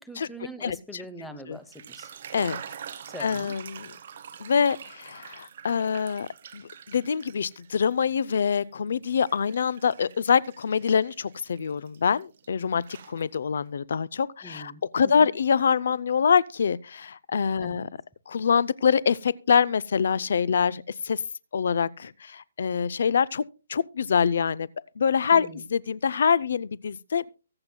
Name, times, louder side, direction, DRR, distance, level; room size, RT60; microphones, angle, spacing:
voice 1, 0.0-2.1 3.1-3.5 14.4-15.3 17.6-17.9 25.3-25.6, equal, ahead, 0.8 m, -43 dB
voice 2, 0.6-1.0 1.5-1.6 2.3-2.6 3.2-3.9 4.4-6.3 6.5-17.9 18.3-21.2 21.5-23.4 23.7-24.7 25.0-27.2, left 6 dB, 65° left, 0.5 m, -25 dB
sound 1, 1.6-8.0 8.3-12.5 12.8-13.6, right 8 dB, 45° right, 1.0 m, -45 dB
23.5 x 7.8 x 2.2 m
hypercardioid pair, 165°, 0 cm